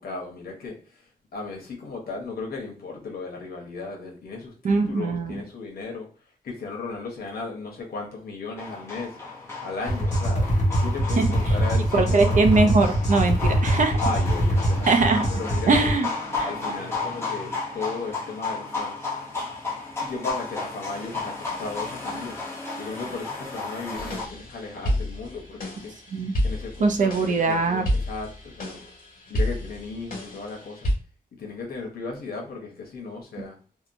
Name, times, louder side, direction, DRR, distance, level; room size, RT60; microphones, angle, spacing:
voice 1, 0.0-6.1 6.4-9.2 9.6-12.7 14.0-14.9 15.4-15.9 16.4-19.0 20.0-22.4 22.8-25.9 26.4-28.8 29.3-30.9 31.3-33.6, left 3 dB, 85° left, 0 dB, 0.9 m, -35 dB
voice 2, 4.6-5.4 11.2-11.3 11.9-14.0 14.9-15.3 15.7-16.1 16.4-16.5 26.1-26.3 26.8-27.9, right 3 dB, 55° right, 5 dB, 0.5 m, -21 dB
sound 1, 8.6-24.3, left 4 dB, 15° left, 0.7 m, -33 dB
sound 2, 9.9-16.0, equal, 50° left, 1.2 m, -23 dB
sound 3, 24.0-30.9, equal, 70° left, 1.2 m, -30 dB
2.8 x 2.1 x 2.5 m, 0.39 s
wide cardioid pair, 165°, 15 cm